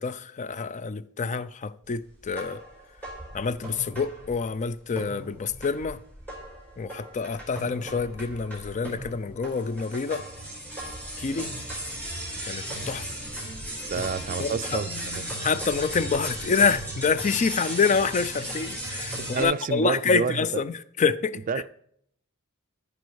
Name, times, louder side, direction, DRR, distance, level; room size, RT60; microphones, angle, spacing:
voice 1, 0.0-2.6 3.3-6.0 6.8-10.2 11.2-11.5 12.5-13.1 14.4-14.8 15.4-21.4, left 5 dB, 35° left, 0.4 m, -27 dB
sound 1, 2.3-4.6 4.9-19.4, right 1 dB, 5° left, 4.4 m, -36 dB
voice 2, 13.9-14.9 19.2-20.6 21.5-21.7, right 5 dB, 40° right, 0.4 m, -29 dB
13.5 x 5.6 x 4.7 m
head